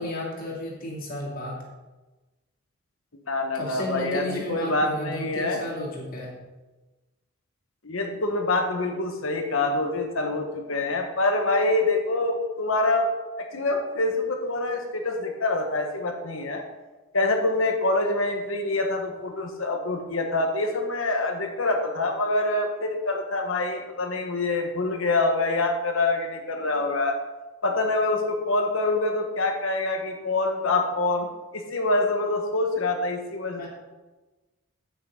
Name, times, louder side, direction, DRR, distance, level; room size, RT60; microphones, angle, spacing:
voice 1, 0.0-1.6 3.5-6.3 33.6-33.7, left 1 dB, 45° left, -3 dB, 2.7 m, -33 dB
voice 2, 3.3-5.6 7.8-13.1 13.5-16.6 17.1-27.1 27.6-31.3 31.5-33.7, left 2 dB, 70° left, 4 dB, 1.4 m, -25 dB
9.3 x 8.8 x 3.8 m, 1.2 s
head